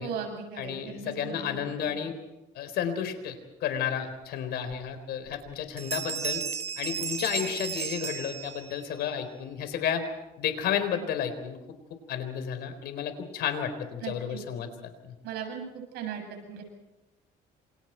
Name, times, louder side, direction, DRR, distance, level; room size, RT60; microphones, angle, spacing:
voice 1, 0.0-1.9 14.0-14.4 15.2-15.6 15.9-16.6, right 6 dB, 80° right, 3 dB, 7.4 m, -38 dB
voice 2, 0.6-2.1 2.5-6.4 6.8-10.0 10.4-11.6 12.1-15.1, left 8 dB, 75° left, 9 dB, 4.1 m, -32 dB
Bell, 5.3-5.5 5.8-8.9, right 7 dB, 40° right, 0.9 m, -34 dB
28.0 x 27.5 x 4.6 m, 0.99 s
cardioid pair, 110°, 17 cm